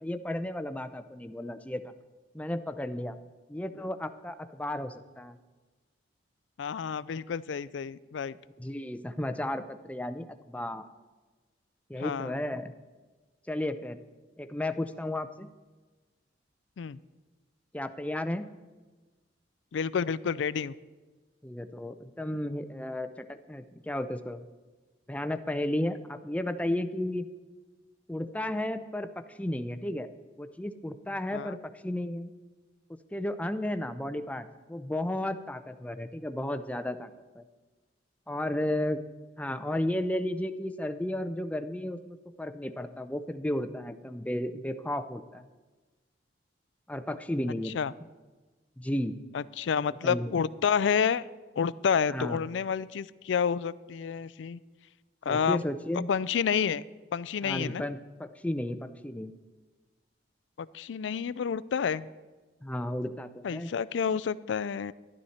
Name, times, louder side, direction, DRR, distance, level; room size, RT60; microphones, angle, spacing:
voice 1, 0.0-1.8 2.3-3.2 3.5-5.4 8.6-10.8 11.9-12.7 13.5-14.0 14.4-15.5 17.7-18.5 21.4-24.5 25.1-27.3 28.1-30.1 30.4-31.6 31.8-32.3 33.1-37.1 37.3-37.4 38.3-39.0 39.4-45.5 46.9-47.7 48.8-49.2 50.0-50.3 52.1-52.4 55.3-56.1 57.4-59.3 62.6-63.7, left 1 dB, 10° left, 9 dB, 0.5 m, -33 dB
voice 2, 6.6-8.3 12.0-12.3 16.8-17.0 19.7-20.7 31.3-31.6 47.7-47.9 49.3-51.2 51.6-54.6 55.3-55.6 56.1-56.8 57.1-57.8 60.6-62.1 63.4-64.9, left 7 dB, 80° left, 19 dB, 0.4 m, -29 dB
12.5 x 11.5 x 4.3 m, 1.3 s
head